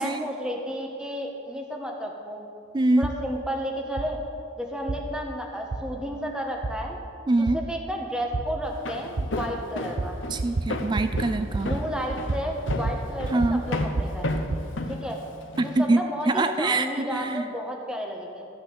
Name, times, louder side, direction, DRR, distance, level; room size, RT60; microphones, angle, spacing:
voice 1, 0.0-2.5 3.0-4.2 4.6-7.0 7.5-10.2 11.6-14.3 14.9-15.2 15.6-18.5, equal, 5° right, 0 dB, 1.3 m, -32 dB
voice 2, 2.7-3.1 7.3-7.6 10.3-11.7 13.3-13.6 15.6-17.5, right 2 dB, 25° right, 9 dB, 0.3 m, -24 dB
sound 1, 3.0-3.2 4.0-4.1 4.9-5.0 5.7-5.8 6.6-6.7 7.5-7.6 8.3-8.4 9.2-9.3 10.0-10.1 10.4-10.7 11.0-11.3 11.5-11.8 12.1-13.0 13.2-14.6, right 2 dB, 65° right, 0.7 m, -28 dB
Walk footsteps, 8.6-15.8, left 2 dB, 75° left, 1.0 m, -33 dB
14.0 x 5.9 x 8.4 m, 2.3 s
head